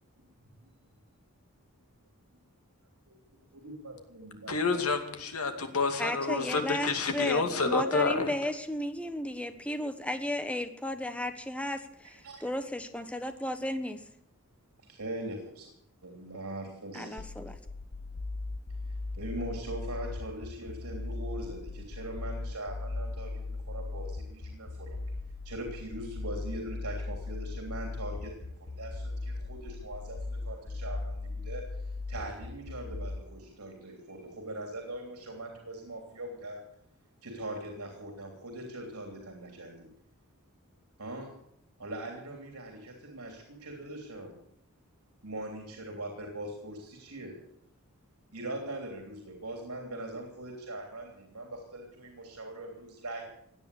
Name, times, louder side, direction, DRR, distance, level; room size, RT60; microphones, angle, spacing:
voice 1, 3.5-4.8 12.0-12.4 14.8-15.7 16.0-17.6 18.8-25.0 25.4-36.6 37.2-39.9 41.0-41.3 41.8-44.4 45.2-47.4 48.3-53.2, right 1 dB, 85° right, 2 dB, 3.2 m, -41 dB
voice 2, 4.5-8.3, left 4 dB, 80° left, 6 dB, 2.4 m, -29 dB
voice 3, 6.0-14.0 16.9-17.6, left 1 dB, 5° left, 9 dB, 1.1 m, -34 dB
sound 1, 17.2-33.2, left 3 dB, 55° left, 1.0 m, -38 dB
16.5 x 9.9 x 8.4 m, 0.76 s
head